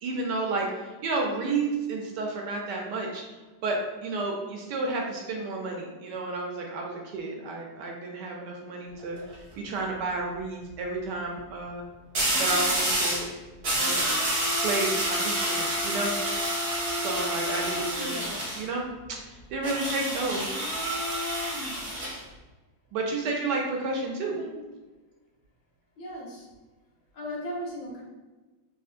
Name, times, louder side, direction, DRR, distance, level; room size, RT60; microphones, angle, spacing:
voice 1, 0.0-3.2 3.6-11.8 12.4-13.3 13.8-14.1 14.6-16.2 17.0-18.3 18.6-20.6 22.9-24.4, right 3 dB, 75° right, 0 dB, 1.1 m, -31 dB
sound 1, 9.0-9.3 12.1-13.3 13.6-18.6 19.6-22.2, right 1 dB, 50° right, 0.7 m, -28 dB
voice 2, 18.1-18.6 24.2-24.6 26.0-26.5 27.1-28.0, equal, 70° left, -4 dB, 1.4 m, -38 dB
3.6 x 2.8 x 2.4 m, 1.2 s
omnidirectional pair, 2.0 m